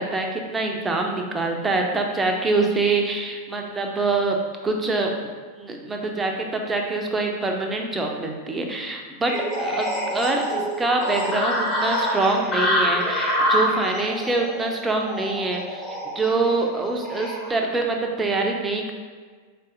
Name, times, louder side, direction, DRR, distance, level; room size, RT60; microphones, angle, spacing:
voice 1, 0.0-4.4 4.6-5.1 5.6-15.9 16.2-18.9, right 3 dB, 15° right, 2 dB, 0.4 m, -25 dB
sound 1, 9.3-17.5, equal, 25° left, 0.7 m, -26 dB
3.8 x 2.6 x 2.5 m, 1.5 s
figure-of-eight pair, 90°, 0 cm